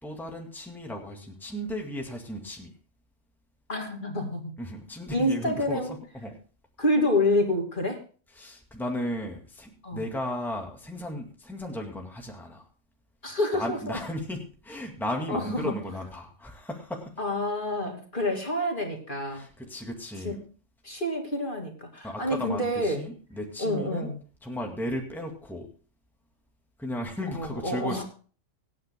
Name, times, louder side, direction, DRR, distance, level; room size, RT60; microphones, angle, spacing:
voice 1, 0.0-2.7 4.6-6.4 8.4-12.7 13.5-17.2 19.3-20.4 22.0-24.1 24.4-25.7 26.8-28.0, equal, ahead, 1 dB, 2.2 m, -35 dB
voice 2, 3.7-4.5 5.1-5.9 6.8-8.0 9.8-10.1 13.2-14.0 15.3-15.7 17.2-19.4 20.2-20.3 20.8-23.0 23.6-24.2 27.4-28.0, left 1 dB, 40° left, 2 dB, 2.8 m, -28 dB
25.0 x 9.5 x 2.2 m, 0.38 s
omnidirectional pair, 1.4 m